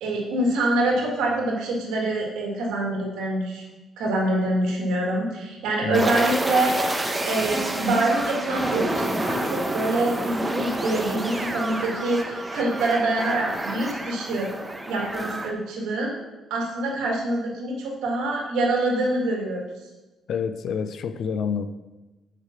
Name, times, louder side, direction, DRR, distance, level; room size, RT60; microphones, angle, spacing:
voice 1, 0.0-3.6 4.0-6.7 7.2-14.5 14.9-16.1 16.5-19.6, right 2 dB, 85° right, -1 dB, 1.8 m, -25 dB
sound 1, 5.9-15.5, right 1 dB, 15° right, 0.8 m, -28 dB
voice 2, 20.3-21.7, left 6 dB, 65° left, 11 dB, 0.4 m, -27 dB
6.7 x 4.7 x 5.8 m, 1.1 s
cardioid pair, 90°, 0 cm